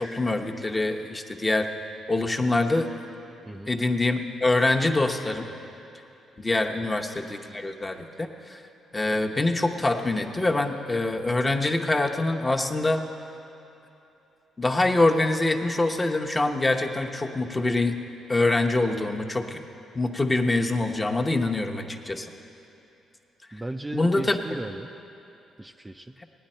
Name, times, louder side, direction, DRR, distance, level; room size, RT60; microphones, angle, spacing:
voice 1, 0.0-1.7 2.1-2.9 3.7-5.5 6.4-8.6 8.9-13.0 14.6-18.0 18.3-19.6 19.9-22.3 23.9-24.4, left 2 dB, 20° left, 3 dB, 0.9 m, -25 dB
voice 2, 23.5-24.9 25.6-26.2, right 2 dB, 15° right, 5 dB, 0.4 m, -36 dB
18.0 x 9.8 x 4.4 m, 2.9 s
cardioid pair, 90°, 0 cm